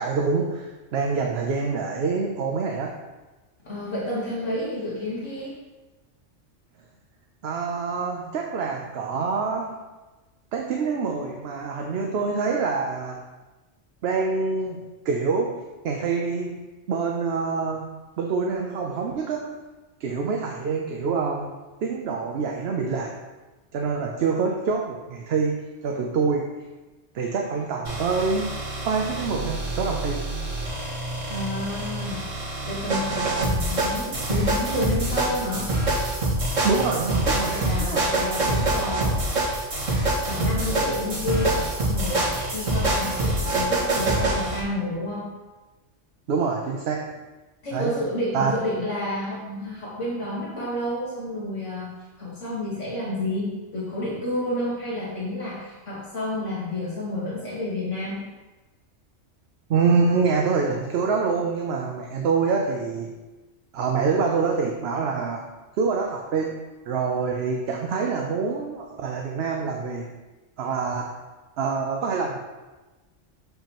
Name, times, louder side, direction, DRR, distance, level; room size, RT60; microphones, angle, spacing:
voice 1, 0.0-3.0 7.4-9.8 10.5-13.2 14.0-16.6 16.9-17.9 18.2-19.6 20.0-21.5 21.8-23.2 23.7-26.5 27.1-28.6 28.8-30.3 36.6-38.0 46.3-47.2 47.7-48.0 48.3-48.5 59.7-63.1 63.7-65.4 65.8-70.1 70.6-71.1 71.6-72.4, right 4 dB, 60° right, 1 dB, 0.8 m, -26 dB
voice 2, 3.6-5.6 31.3-32.3 32.6-35.7 37.4-39.5 40.3-45.3 47.6-51.9 52.2-58.2, left 1 dB, 75° left, -6 dB, 1.8 m, -30 dB
sound 1, 27.8-44.6, right 1 dB, 85° right, 2.1 m, -26 dB
7.0 x 5.6 x 3.0 m, 1.2 s
omnidirectional pair, 1.3 m